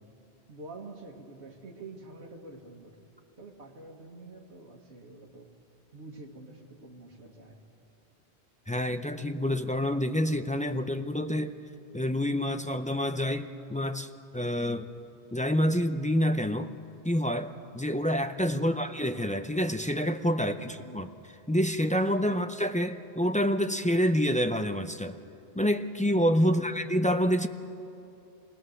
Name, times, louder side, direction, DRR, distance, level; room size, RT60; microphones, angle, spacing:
voice 1, 0.5-3.0 3.4-5.5 5.9-7.6 18.5-18.8 20.4-21.1 22.3-22.4 26.4-26.7, right 3 dB, 80° right, 0 dB, 1.9 m, -47 dB
voice 2, 8.7-11.6 11.9-14.9 15.3-16.7 17.0-21.1 21.5-25.2 25.5-27.5, equal, 10° left, 7 dB, 0.3 m, -27 dB
26.0 x 19.0 x 6.5 m, 2.8 s
omnidirectional pair, 1.1 m